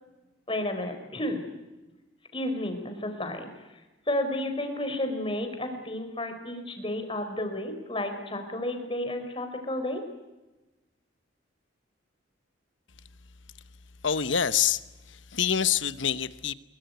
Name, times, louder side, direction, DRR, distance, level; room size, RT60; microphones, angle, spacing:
voice 1, 0.5-1.4 2.3-3.5 4.1-10.0, left 1 dB, 25° left, 4.5 m, -31 dB
voice 2, 14.0-14.8 15.1-16.5, left 8 dB, 75° left, 1.0 m, -26 dB
24.5 x 23.0 x 9.3 m
head